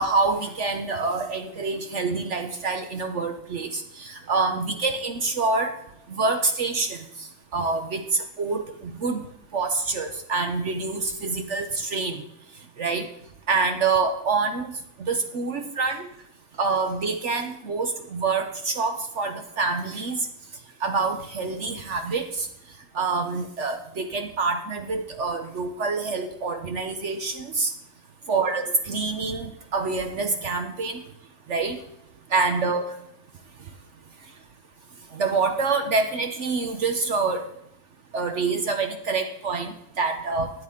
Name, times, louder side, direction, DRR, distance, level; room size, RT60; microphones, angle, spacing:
voice 1, 0.0-5.7 6.1-7.3 7.5-9.2 9.5-12.2 12.8-13.1 13.5-14.7 15.0-16.1 16.6-20.2 20.8-22.5 22.9-27.7 28.3-31.0 31.5-31.8 32.3-32.8 35.1-37.5 38.1-40.5, right 4 dB, 55° right, 6 dB, 0.9 m, -26 dB
12.5 x 9.1 x 3.6 m, 0.75 s
omnidirectional pair, 2.0 m